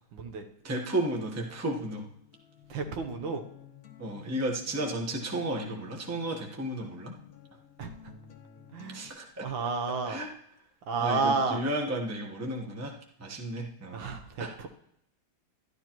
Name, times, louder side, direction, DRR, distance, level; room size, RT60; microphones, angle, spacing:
voice 1, 0.1-0.5 2.7-3.4 7.8-8.1 8.7-9.0 9.4-10.2 10.9-11.6 13.9-14.7, right 4 dB, 75° right, 5 dB, 1.7 m, -31 dB
voice 2, 0.6-2.1 4.0-7.1 8.9-9.5 10.0-10.3 11.0-14.5, right 1 dB, 15° right, 1 dB, 0.7 m, -33 dB
Acoustic guitar, 1.1-9.1, left 9 dB, 50° left, 1.3 m, -53 dB
12.0 x 11.5 x 3.0 m, 0.77 s
omnidirectional pair, 2.2 m